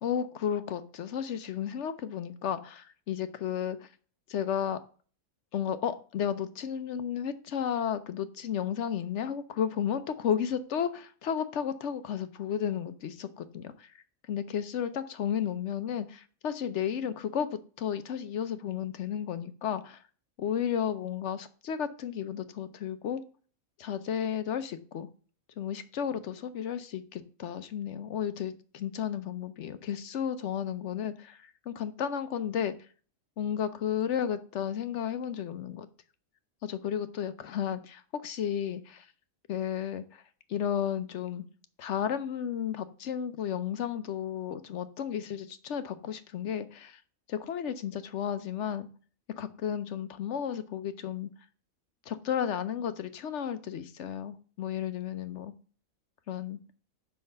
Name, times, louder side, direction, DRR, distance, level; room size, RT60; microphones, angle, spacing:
voice 1, 0.0-3.9 4.3-4.8 5.5-14.0 14.3-20.0 20.4-23.2 23.8-25.1 25.6-32.7 33.4-35.9 36.6-39.1 39.5-40.2 40.5-41.4 41.8-47.0 47.3-48.9 49.4-51.3 52.1-55.5 56.3-56.6, left 8 dB, 65° left, 12 dB, 0.9 m, -33 dB
5.6 x 5.6 x 6.5 m, 0.41 s
omnidirectional pair, 1.4 m